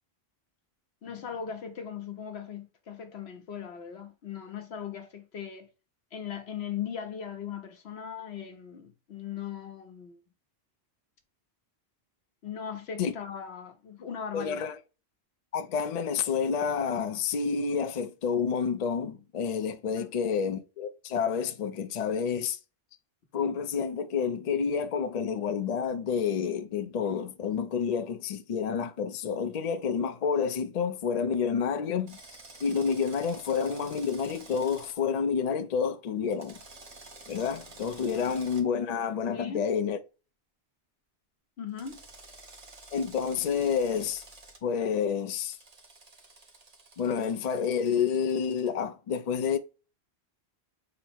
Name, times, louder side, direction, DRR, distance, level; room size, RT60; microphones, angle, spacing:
voice 1, 1.0-5.7 6.1-10.2 12.4-14.7 20.0-20.1 39.3-39.7 41.6-42.0, left 8 dB, 75° left, 1.1 m, -39 dB
voice 2, 14.3-14.8 15.5-22.6 23.3-32.2 32.6-36.6 37.3-40.0 42.9-44.2 44.6-45.6 47.0-49.6, left 6 dB, 50° left, 0.5 m, -29 dB
Drill, 32.1-35.0 36.3-38.6 41.8-44.6 45.5-48.7, right 2 dB, 40° right, 0.9 m, -50 dB
3.9 x 2.0 x 4.3 m
omnidirectional pair, 1.1 m